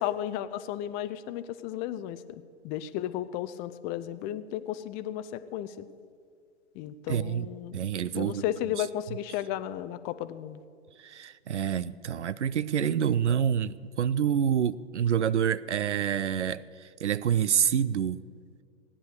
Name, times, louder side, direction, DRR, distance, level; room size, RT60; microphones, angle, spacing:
voice 1, 0.0-5.9 6.7-10.6, left 12 dB, 25° left, 0.5 m, -34 dB
voice 2, 7.1-8.4 11.0-18.3, right 8 dB, 80° right, 0.6 m, -27 dB
16.5 x 9.8 x 6.6 m
figure-of-eight pair, 110°, 34 cm